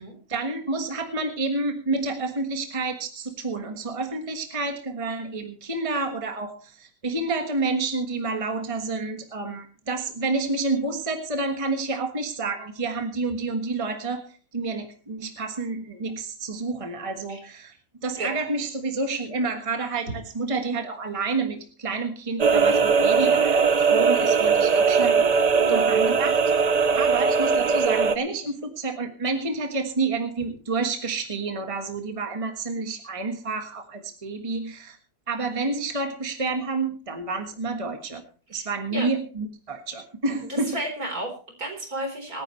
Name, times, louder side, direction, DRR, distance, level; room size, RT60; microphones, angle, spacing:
voice 1, 0.3-14.3 14.5-17.7 18.0-25.3 25.7-26.4 27.0-35.0 35.3-38.2 38.5-40.8, right 3 dB, 20° right, 6 dB, 1.5 m, -29 dB
sound 1, 22.4-28.2, right 5 dB, 40° right, 0.6 m, -20 dB
voice 2, 25.5-25.9 38.9-39.1 40.5-42.4, right 1 dB, 65° right, 3 dB, 4.7 m, -32 dB
25.5 x 9.8 x 3.2 m, 0.38 s
omnidirectional pair, 1.7 m